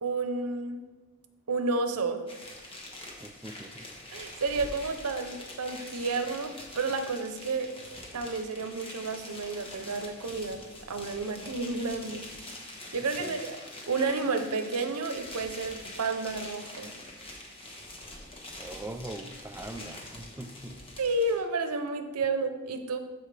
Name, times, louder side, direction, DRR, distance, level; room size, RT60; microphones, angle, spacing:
voice 1, 0.0-0.8 1.5-2.2 4.1-7.7 8.1-10.6 10.9-12.2 12.9-13.6 13.9-16.9 21.0-23.0, right 3 dB, 85° right, 8 dB, 0.7 m, -31 dB
sound 1, 2.3-21.4, left 1 dB, 25° left, 1.3 m, -44 dB
voice 2, 3.2-3.9 13.2-13.4 18.6-20.8, right 1 dB, 10° right, 6 dB, 0.4 m, -42 dB
12.5 x 4.7 x 3.3 m, 1.2 s
head